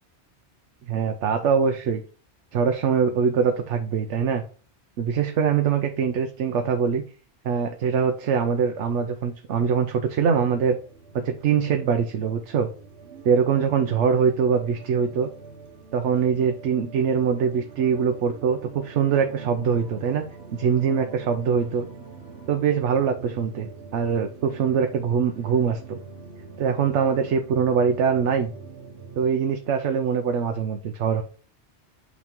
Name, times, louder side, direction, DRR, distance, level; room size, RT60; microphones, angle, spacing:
voice 1, 0.9-2.0 2.5-4.4 5.0-7.0 7.4-10.8 11.1-12.7 13.2-15.3 15.9-20.2 20.5-21.9 22.5-26.0 26.6-28.5 29.2-31.2, right 6 dB, 90° right, 5 dB, 1.0 m, -23 dB
sound 1, 10.0-29.3, right 4 dB, 70° right, 1.2 m, -44 dB
8.2 x 3.2 x 3.6 m, 0.38 s
omnidirectional pair, 1.2 m